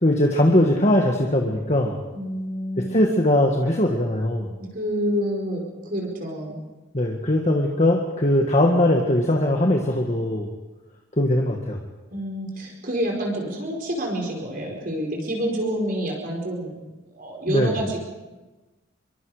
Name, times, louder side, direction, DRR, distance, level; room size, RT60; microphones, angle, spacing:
voice 1, 0.0-2.0 2.9-4.5 6.9-10.5 11.2-11.8 17.5-17.7, left 1 dB, 30° left, 1 dB, 1.7 m, -20 dB
voice 2, 2.1-3.0 4.7-6.6 12.1-16.8 17.1-18.0, equal, 45° right, 0 dB, 4.9 m, -28 dB
26.5 x 23.0 x 5.0 m, 1.2 s
head